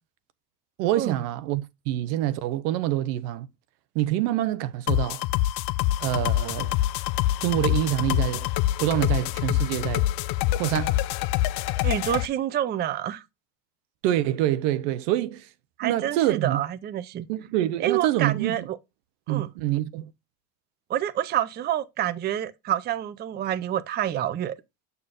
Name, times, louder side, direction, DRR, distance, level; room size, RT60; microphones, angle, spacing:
voice 1, 0.8-3.5 3.9-5.2 6.0-6.7 7.4-8.5 8.8-10.1 10.6-11.0 14.0-15.5 15.8-16.6 17.3-18.7 19.3-20.1, right 13 dB, 80° right, 0.9 m, -26 dB
sound 1, 4.9-12.2, left 14 dB, 55° left, 0.5 m, -25 dB
voice 2, 11.8-13.2 15.8-17.3 17.8-18.8 19.3-19.5 20.9-24.5, right 11 dB, 20° right, 0.4 m, -28 dB
7.0 x 6.7 x 2.5 m
supercardioid pair, 120°, 48 cm